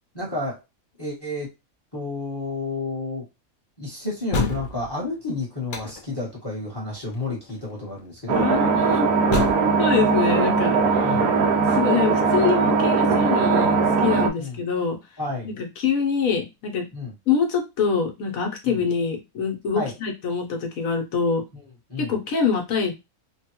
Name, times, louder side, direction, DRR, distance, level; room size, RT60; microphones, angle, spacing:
voice 1, 0.1-0.6 1.0-1.5 1.9-3.2 3.8-8.5 11.0-11.3 14.4-14.6 15.2-15.5 16.9-17.1 18.7-18.8 19.7-19.9 21.5-22.1, left 2 dB, 20° left, -3 dB, 1.0 m, -31 dB
sound 1, 4.3-4.9 5.7-6.2 6.9-7.1 7.5-7.6 9.3-9.5, left 3 dB, 50° left, 0.6 m, -26 dB
sound 2, 8.3-14.3, right 4 dB, 90° right, 1.1 m, -20 dB
voice 2, 8.4-9.1 9.8-11.2 11.7-15.0 15.4-16.9 17.3-21.4 22.0-22.9, left 5 dB, 75° left, 3 dB, 1.2 m, -25 dB
3.3 x 2.2 x 2.9 m, 0.23 s
omnidirectional pair, 1.5 m